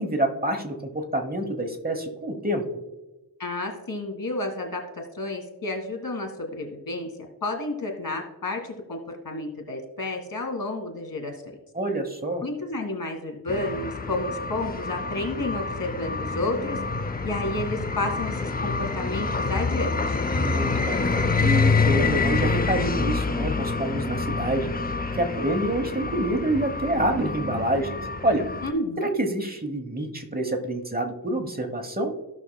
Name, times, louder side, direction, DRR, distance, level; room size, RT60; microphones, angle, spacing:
voice 1, 0.0-2.8 11.7-12.5 20.3-24.7 25.2-28.5 29.0-32.1, right 1 dB, 25° right, 5 dB, 1.0 m, -27 dB
voice 2, 3.4-7.1 7.4-11.4 12.4-16.8 17.2-20.2 28.6-29.1, left 2 dB, 65° left, 3 dB, 1.8 m, -31 dB
sound 1, 13.5-28.7, left 4 dB, 25° left, 0.5 m, -27 dB
16.0 x 6.0 x 2.2 m, 1.1 s
wide cardioid pair, 85°, 38 cm